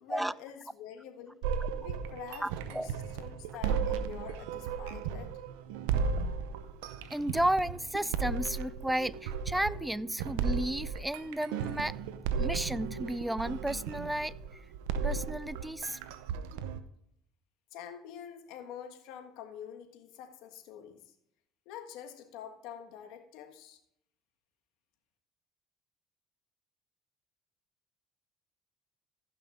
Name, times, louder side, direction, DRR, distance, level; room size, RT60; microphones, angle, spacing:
voice 1, 0.0-1.4 1.8-5.3 17.7-21.0 21.6-23.8, left 9 dB, 75° left, 5 dB, 1.5 m, -46 dB
sound 1, 1.4-16.8, right 6 dB, 90° right, 0.7 m, -35 dB
voice 2, 2.4-2.9 7.1-11.9 12.4-14.3 15.0-16.0, right 1 dB, 5° right, 20 dB, 0.4 m, -33 dB
15.0 x 6.0 x 3.6 m, 0.74 s
supercardioid pair, 90°, 0 cm